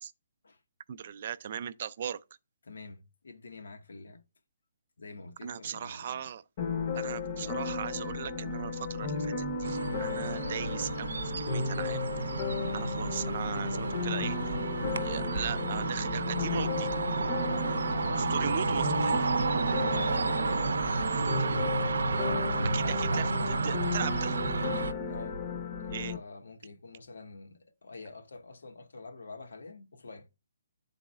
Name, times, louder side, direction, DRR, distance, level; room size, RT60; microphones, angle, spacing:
voice 1, 0.9-2.2 5.4-6.4 6.9-12.0 12.7-14.3 15.0-17.0 18.2-19.2 21.0-21.5 22.7-24.5 25.9-26.2, right 8 dB, 35° right, 0.3 m, -38 dB
voice 2, 2.6-4.2 5.0-6.3 13.4-14.2 15.0-15.1 17.8-19.1 19.8-21.1 22.3-24.1 24.8-25.4 25.8-30.3, left 3 dB, 90° left, 0.9 m, -46 dB
sound 1, 6.6-26.2, left 4 dB, 30° left, 0.6 m, -34 dB
sound 2, 9.6-24.9, right 4 dB, 85° right, 0.6 m, -31 dB
11.0 x 4.0 x 2.3 m
hypercardioid pair, 175°, 0 cm